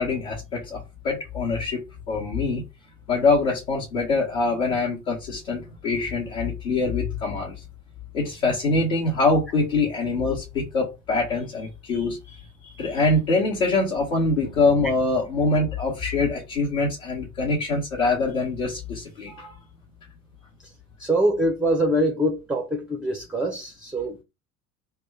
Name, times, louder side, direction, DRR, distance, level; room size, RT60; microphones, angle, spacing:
voice 1, 0.0-2.6 3.1-7.6 8.1-19.6, left 3 dB, 70° left, 1.0 m, -24 dB
voice 2, 21.0-24.2, right 1 dB, ahead, 0.4 m, -24 dB
2.9 x 2.2 x 3.4 m
figure-of-eight pair, 60°, 42 cm